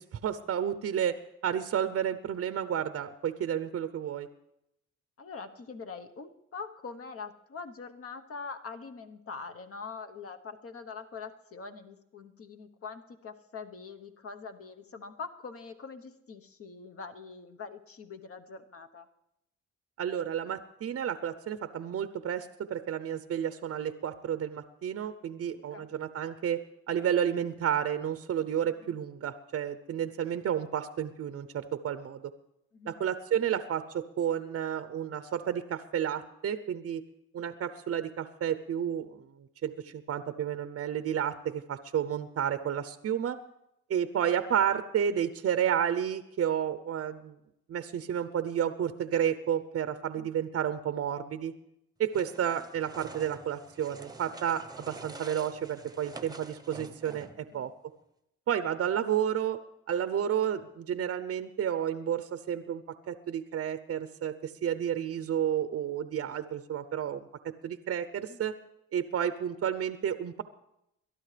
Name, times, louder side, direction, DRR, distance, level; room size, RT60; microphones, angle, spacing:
voice 1, 0.0-4.3 20.0-32.2 32.9-37.0 37.3-43.4 43.9-47.4 47.7-51.5 52.0-57.7 58.5-59.6 59.9-68.5 68.9-70.4, right 9 dB, 50° right, 11 dB, 0.7 m, -31 dB
voice 2, 5.2-19.1 25.7-25.9 28.8-29.0 32.7-33.0 50.2-50.3 57.3-57.6 68.3-68.4, left 5 dB, 50° left, 7 dB, 1.1 m, -43 dB
sound 1, 52.1-57.5, right 3 dB, 15° right, 0.9 m, -47 dB
22.5 x 12.0 x 3.3 m, 0.82 s
cardioid pair, 90°, 30 cm